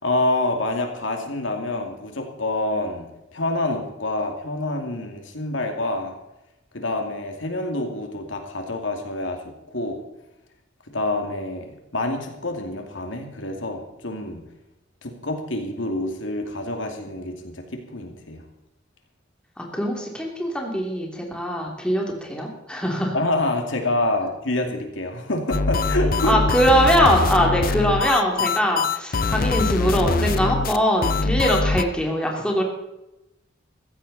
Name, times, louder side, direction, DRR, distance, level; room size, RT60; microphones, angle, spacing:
voice 1, 0.0-3.1 3.3-6.1 6.7-10.0 10.9-14.4 15.0-18.4 23.1-26.4, left 2 dB, 75° left, 3 dB, 2.6 m, -27 dB
voice 2, 19.6-23.1 26.3-32.6, equal, 5° left, -1 dB, 2.9 m, -22 dB
sound 1, 25.5-31.8, left 3 dB, 50° left, 0.7 m, -23 dB
15.5 x 14.5 x 4.2 m, 0.92 s
head